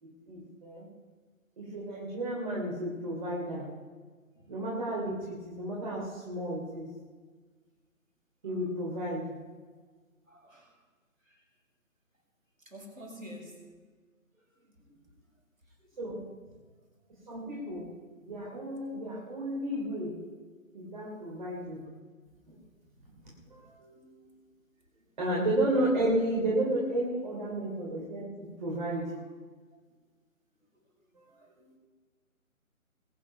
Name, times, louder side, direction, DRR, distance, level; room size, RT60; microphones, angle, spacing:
voice 1, 0.0-0.9 1.6-3.7 4.5-6.9 8.4-9.3 16.0-16.3 17.3-17.9 18.2-20.2 20.7-21.9 22.5-22.6 23.4-24.3 25.2-29.1 31.1-31.7, right 1 dB, 35° right, -4 dB, 3.1 m, -33 dB
voice 2, 10.3-10.8 11.2-11.4 12.6-13.7 14.3-15.0 15.8-15.9 24.8-25.1 28.9-29.0 29.7-29.8 30.7-30.8 31.3-31.5, equal, 70° right, -1 dB, 5.6 m, -50 dB
21.0 x 8.8 x 5.5 m, 1.4 s
figure-of-eight pair, 155°, 42 cm